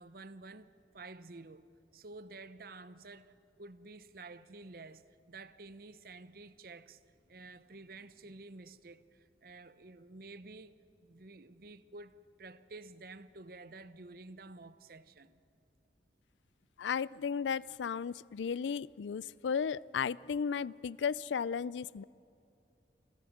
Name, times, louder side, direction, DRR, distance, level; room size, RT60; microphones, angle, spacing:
voice 1, 0.0-1.7 1.9-7.0 7.2-15.4 22.0-22.1, right 3 dB, 55° right, 0.8 m, -51 dB
voice 2, 16.8-22.0, left 6 dB, 90° left, 0.4 m, -34 dB
27.5 x 15.0 x 7.2 m
head